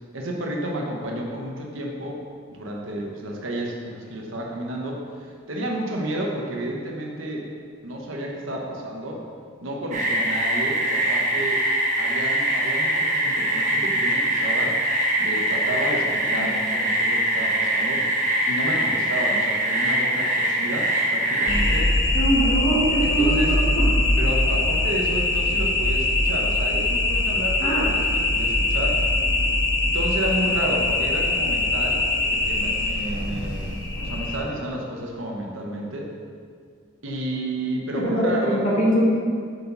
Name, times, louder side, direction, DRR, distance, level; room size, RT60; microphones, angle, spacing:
voice 1, 0.1-2.2 2.5-7.5 7.8-9.2 9.6-11.7 12.0-14.8 15.1-18.1 18.5-21.9 23.0-23.6 24.2-29.0 29.8-36.1 37.0-38.8, right 1 dB, 90° right, -1 dB, 1.2 m, -31 dB
sound 1, 9.9-21.8, right 1 dB, 40° right, 1.2 m, -23 dB
sound 2, 21.5-34.4, left 2 dB, 75° left, 1.5 m, -22 dB
voice 2, 22.1-23.8 27.6-27.9 37.9-39.0, right 1 dB, 40° left, -6 dB, 1.8 m, -23 dB
7.1 x 6.2 x 4.1 m, 2.2 s
head